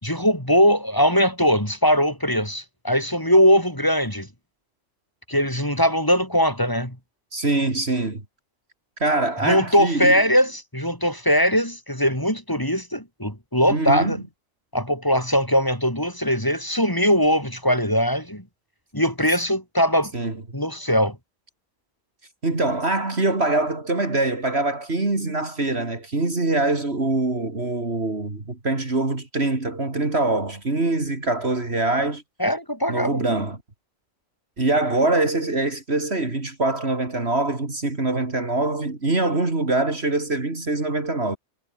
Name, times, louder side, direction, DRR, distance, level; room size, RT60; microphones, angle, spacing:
voice 1, 0.0-4.3 5.3-7.0 9.4-14.2 14.7-18.4 18.9-20.1 20.5-21.2 32.4-33.4, equal, 15° left, 5.8 m, -21 dB
voice 2, 7.3-8.2 9.0-10.1 13.7-14.2 20.1-20.4 22.4-32.2 32.9-33.6 34.6-41.4, right 2 dB, 55° right, 3.6 m, -24 dB
omnidirectional pair, 1.3 m